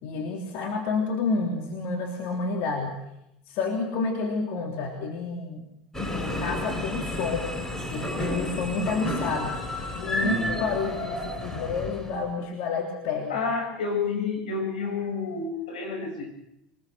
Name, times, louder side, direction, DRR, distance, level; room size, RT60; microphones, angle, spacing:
voice 1, 0.0-3.0 3.5-5.6 6.1-7.5 7.9-9.6 10.0-13.4, left 4 dB, 60° left, 1 dB, 3.5 m, -29 dB
sound 1, 5.9-12.3, left 1 dB, 15° left, 7.3 m, -31 dB
voice 2, 10.2-10.5 13.3-16.3, left 4 dB, 90° left, 1 dB, 7.9 m, -29 dB
24.0 x 20.5 x 6.3 m, 0.83 s
hypercardioid pair, 90°, 4 cm